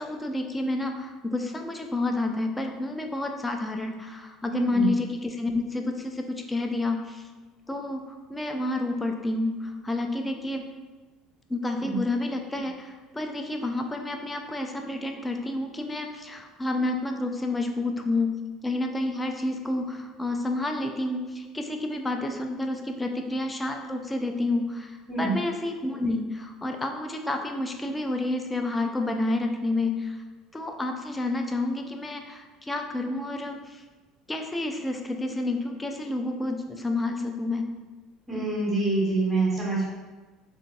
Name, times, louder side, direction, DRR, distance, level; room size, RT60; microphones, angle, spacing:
voice 1, 0.0-7.3 7.7-10.7 11.5-30.2 30.5-33.8 34.3-37.7, left 2 dB, 15° left, 4 dB, 0.4 m, -30 dB
voice 2, 4.5-4.9 11.8-12.0 25.1-25.3 38.3-39.9, right 3 dB, 15° right, -8 dB, 1.2 m, -26 dB
3.8 x 2.5 x 2.4 m, 1.3 s
hypercardioid pair, 65°, 0 cm